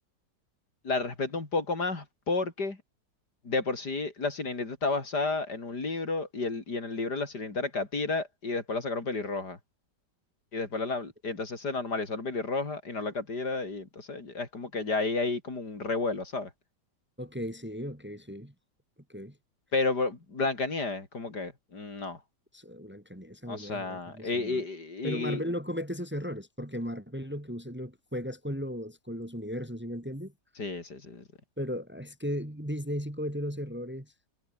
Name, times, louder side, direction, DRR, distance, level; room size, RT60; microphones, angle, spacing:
voice 1, 0.8-2.8 3.4-9.6 10.5-16.5 19.7-22.2 23.5-25.4 30.6-31.2, left 3 dB, 60° left, 4.4 m, -31 dB
voice 2, 17.2-18.5 19.1-19.3 22.5-24.6 25.0-30.3 31.6-34.1, equal, 5° right, 2.6 m, -36 dB
omnidirectional pair, 1.9 m